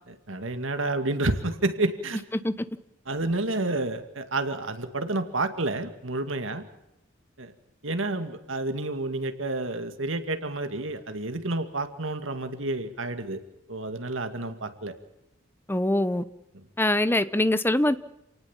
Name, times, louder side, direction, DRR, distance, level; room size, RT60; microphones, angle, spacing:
voice 1, 0.3-2.2 3.1-6.6 7.4-7.5 7.8-13.4 13.7-14.9 16.5-16.6, right 2 dB, 75° right, 8 dB, 2.2 m, -29 dB
voice 2, 15.7-16.2 16.8-18.0, left 1 dB, 10° left, 13 dB, 0.9 m, -23 dB
28.5 x 18.5 x 7.4 m, 0.87 s
head